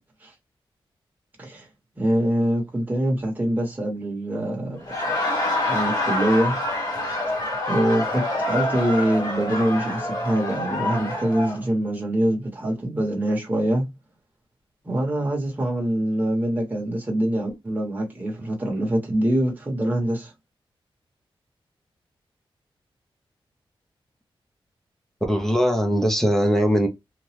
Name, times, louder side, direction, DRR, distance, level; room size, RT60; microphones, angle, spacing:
voice 1, 2.0-4.8 5.6-6.6 7.7-13.9 14.8-20.3, right 1 dB, 20° right, 1.0 m, -24 dB
Laughter, 4.7-11.6, left 2 dB, 45° left, 1.4 m, -26 dB
voice 2, 25.3-26.9, equal, 5° left, 0.6 m, -20 dB
2.9 x 2.2 x 3.2 m
wide cardioid pair, 160°, 9 cm